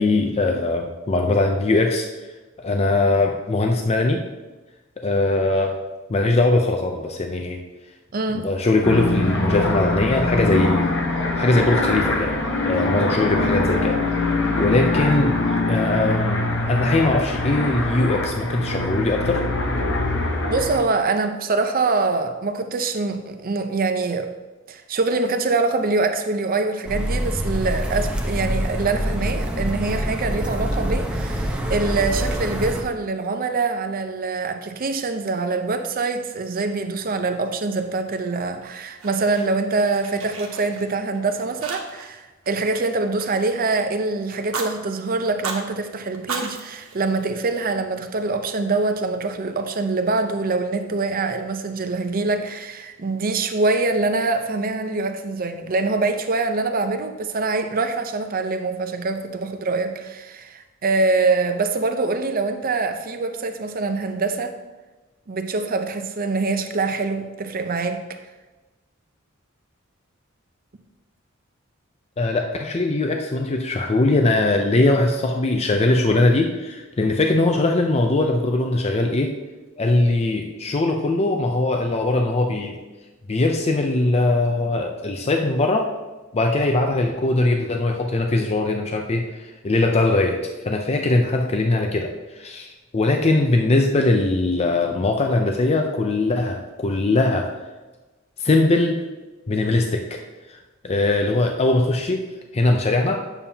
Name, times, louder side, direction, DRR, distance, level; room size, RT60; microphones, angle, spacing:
voice 1, 0.0-2.1 2.6-4.2 5.0-5.8 6.1-7.6 8.3-10.9 11.4-12.3 12.6-14.0 14.6-15.3 15.7-19.4 72.2-79.3 79.8-82.8 83.3-85.9 86.3-90.4 90.6-97.5 98.4-99.0 99.5-100.2 100.5-100.6 100.8-102.2 102.5-103.2, left 2 dB, 30° left, 3 dB, 0.5 m, -21 dB
voice 2, 8.1-8.5 20.5-24.3 24.7-64.6 65.3-68.0, right 3 dB, 45° right, 7 dB, 0.6 m, -24 dB
sound 1, 8.8-20.8, left 2 dB, 65° left, 1.0 m, -23 dB
sound 2, 26.9-32.8, equal, 5° right, 0.9 m, -25 dB
Fire, 38.6-39.7 40.0-41.2 41.6-42.2 42.4-43.8 44.3-44.7 45.2-45.6 46.1-47.7, right 4 dB, 85° right, 1.2 m, -35 dB
9.0 x 7.0 x 2.8 m, 1.2 s
head